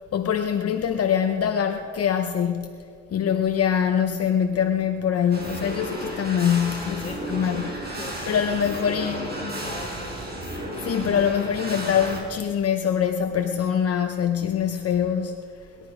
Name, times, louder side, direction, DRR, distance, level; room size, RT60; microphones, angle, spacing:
voice 1, 0.0-7.6 8.3-9.5 10.8-15.5, left 8 dB, 50° left, 0.9 m, -24 dB
sound 1, 5.3-12.2, right 1 dB, 35° right, 4.6 m, -33 dB
voice 2, 7.0-10.3, left 2 dB, 20° left, 2.2 m, -40 dB
20.0 x 12.0 x 5.0 m
cardioid pair, 90°, 30 cm